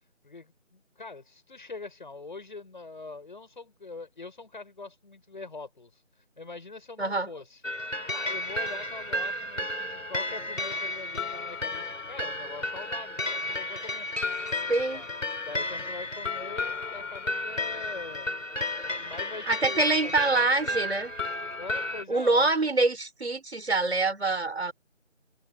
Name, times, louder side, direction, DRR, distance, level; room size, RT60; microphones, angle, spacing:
voice 1, 0.2-7.6 8.1-14.1 14.9-15.1 15.4-18.3 19.0-20.9 21.6-22.5, left 3 dB, 40° left, 7.4 m, -43 dB
voice 2, 7.0-7.3 14.7-15.0 19.5-21.1 22.1-24.7, right 3 dB, 55° right, 5.6 m, -25 dB
sound 1, 7.6-22.0, left 2 dB, 80° left, 4.3 m, -33 dB
figure-of-eight pair, 170°, 38 cm